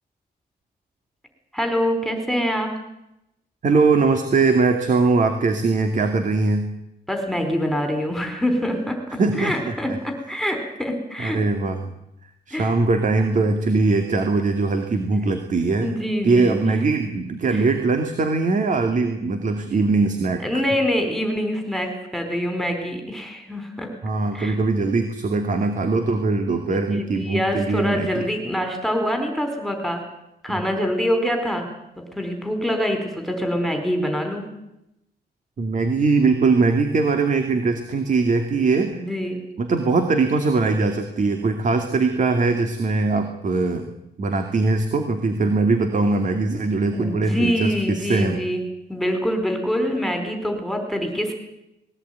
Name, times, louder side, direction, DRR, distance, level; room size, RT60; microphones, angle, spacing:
voice 1, 1.5-2.7 7.1-11.4 12.5-12.7 13.3-13.5 15.8-16.7 17.5-17.6 20.4-23.9 24.3-24.6 27.0-30.0 30.4-31.7 32.1-34.5 38.9-39.4 46.9-48.6 48.9-51.3, equal, ahead, 4 dB, 4.6 m, -25 dB
voice 2, 3.6-6.7 9.2-10.0 11.2-11.9 12.5-15.9 16.2-20.6 24.0-28.2 30.5-30.6 35.6-39.0 39.6-43.9 44.2-48.4, right 3 dB, 45° right, 6 dB, 2.3 m, -21 dB
21.0 x 18.0 x 9.4 m, 0.84 s
wide cardioid pair, 140°, 17 cm